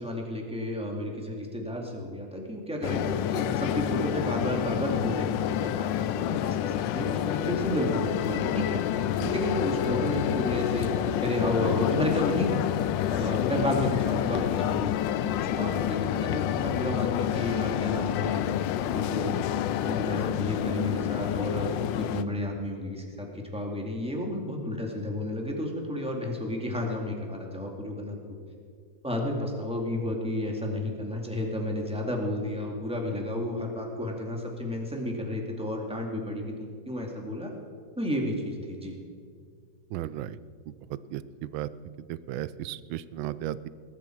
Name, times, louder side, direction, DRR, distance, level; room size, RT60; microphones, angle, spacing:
voice 1, 0.0-10.9 11.2-12.5 13.1-14.9 15.2-19.4 19.8-28.2 29.0-37.5 38.0-39.0, left 1 dB, 5° right, 0 dB, 2.1 m, -32 dB
sound 1, 2.8-22.2, left 11 dB, 75° left, 1.2 m, -28 dB
voice 2, 39.9-40.4 40.7-41.7 42.1-43.7, right 12 dB, 85° right, 16 dB, 1.4 m, -35 dB
20.0 x 12.5 x 4.6 m, 2.1 s
omnidirectional pair, 2.1 m